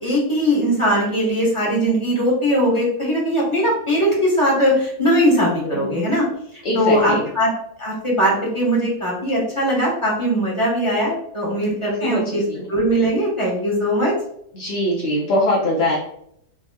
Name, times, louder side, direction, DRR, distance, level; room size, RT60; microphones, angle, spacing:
voice 1, 0.0-6.2 6.7-7.5 7.8-12.4 12.7-14.1, equal, 20° left, -5 dB, 1.2 m, -20 dB
voice 2, 5.6-6.0 6.6-7.2 12.0-12.7 14.5-16.0, left 1 dB, 55° left, -5 dB, 0.7 m, -22 dB
4.1 x 3.4 x 2.3 m, 0.70 s
omnidirectional pair, 1.7 m